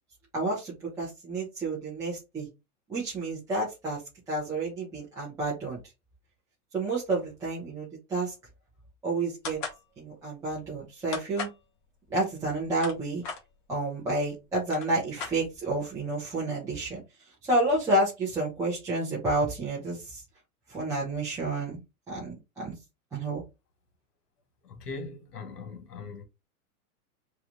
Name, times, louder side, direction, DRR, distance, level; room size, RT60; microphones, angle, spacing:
voice 1, 0.3-2.5 2.9-4.0 4.3-5.8 6.7-8.3 9.0-9.6 10.0-11.5 12.1-13.2 13.7-17.0 17.4-20.2 20.7-21.8 22.1-22.7 23.1-23.4, right 2 dB, 5° right, 0.7 m, -30 dB
sound 1, 9.4-9.8 11.1-11.6 12.5-13.4 14.2-14.3 14.6-15.8, left 5 dB, 25° left, 0.8 m, -37 dB
voice 2, 24.6-26.3, left 4 dB, 85° left, 1.3 m, -40 dB
3.0 x 2.3 x 3.9 m
hypercardioid pair, 155°, 46 cm